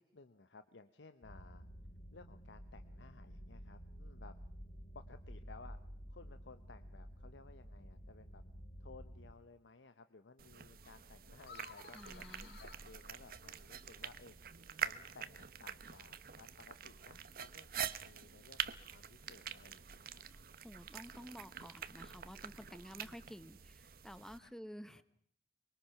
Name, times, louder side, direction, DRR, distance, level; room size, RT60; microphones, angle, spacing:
voice 1, 0.0-1.6 2.1-4.3 4.9-5.8 6.1-8.4 8.8-20.2 24.4-24.5 24.9-25.0, left 3 dB, 90° left, 9 dB, 0.9 m, -58 dB
sound 1, 1.2-9.3, equal, 45° left, 3.7 m, -52 dB
sound 2, 10.4-24.4, right 8 dB, 55° right, 0.8 m, -46 dB
sound 3, 11.4-13.9, left 5 dB, 65° left, 2.0 m, -57 dB
voice 2, 11.9-12.6 20.3-25.0, equal, 5° left, 12 dB, 0.9 m, -52 dB
24.0 x 22.5 x 5.8 m, 0.65 s
head